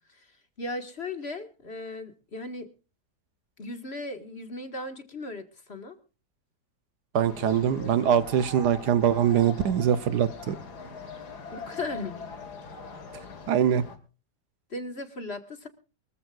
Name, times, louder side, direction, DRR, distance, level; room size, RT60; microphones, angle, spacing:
voice 1, 0.6-2.7 3.6-6.0 11.5-12.3 14.7-15.7, left 2 dB, 40° left, 8 dB, 1.9 m, -37 dB
voice 2, 7.1-10.6 13.5-13.8, right 9 dB, 75° right, 14 dB, 1.4 m, -23 dB
sound 1, 7.2-14.0, left 3 dB, 70° left, 2.5 m, -41 dB
23.5 x 14.5 x 2.5 m, 0.33 s
omnidirectional pair, 1.8 m